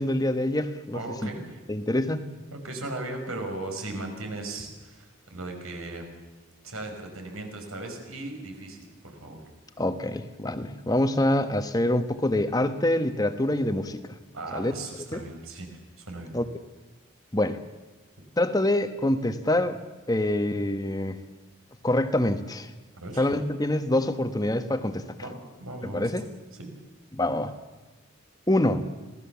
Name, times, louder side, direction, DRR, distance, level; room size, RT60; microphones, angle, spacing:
voice 1, 0.0-1.3 1.7-2.2 9.8-14.2 14.5-14.7 15.1-15.2 16.3-16.4 17.3-17.6 18.4-19.8 20.1-21.2 21.8-22.7 23.2-25.0 25.9-26.3 27.1-27.5 28.5-28.8, left 1 dB, 20° left, 9 dB, 1.2 m, -25 dB
voice 2, 0.9-1.6 2.5-6.1 6.6-8.8 9.0-9.4 14.3-16.3 23.0-23.3 25.2-25.3 25.6-26.1 26.6-26.7, right 2 dB, 80° right, 3 dB, 5.7 m, -37 dB
26.5 x 18.5 x 7.2 m, 1.2 s
head